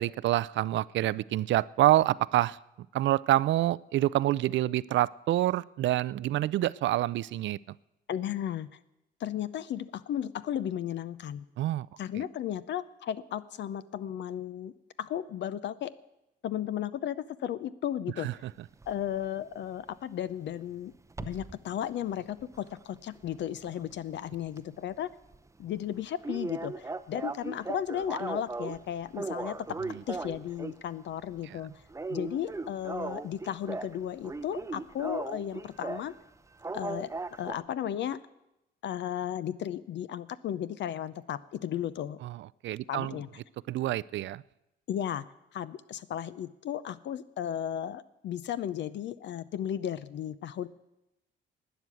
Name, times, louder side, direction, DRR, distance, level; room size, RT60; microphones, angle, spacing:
voice 1, 0.0-2.6 2.9-7.6 11.6-11.9 18.2-18.3 31.5-31.6 42.2-43.1 43.7-44.4, right 14 dB, 70° right, 21 dB, 0.4 m, -27 dB
voice 2, 8.1-8.8 9.2-11.5 12.0-15.9 16.4-18.3 18.9-20.9 21.2-25.1 25.6-29.6 30.1-31.7 32.1-36.1 36.7-37.1 37.4-38.2 38.8-42.2 42.9-43.3 44.9-45.3 45.5-50.7, left 10 dB, 65° left, 15 dB, 0.6 m, -34 dB
sound 1, 18.8-19.0 21.1-21.6 22.0-24.1 24.4-24.6 24.9-25.0 25.3-25.4 25.7-25.8 26.2-28.8 29.1-30.9 31.2-31.5 31.9-34.0 34.2-36.1 36.6-37.6, right 3 dB, 15° right, 0.6 m, -37 dB
12.0 x 9.3 x 8.4 m, 0.91 s
cardioid pair, 90°, 20 cm